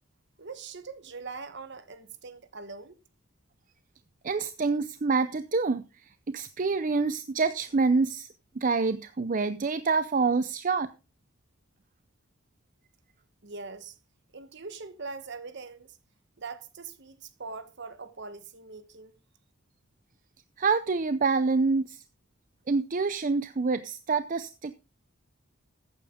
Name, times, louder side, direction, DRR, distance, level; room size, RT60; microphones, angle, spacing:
voice 1, 0.4-3.0 13.4-13.9 14.3-16.0 16.4-19.1, right 4 dB, 55° right, 1.2 m, -42 dB
voice 2, 4.2-5.8 6.3-8.3 8.6-10.9 20.6-22.0 22.7-24.7, right 4 dB, 40° right, 0.5 m, -26 dB
14.0 x 9.1 x 3.7 m
head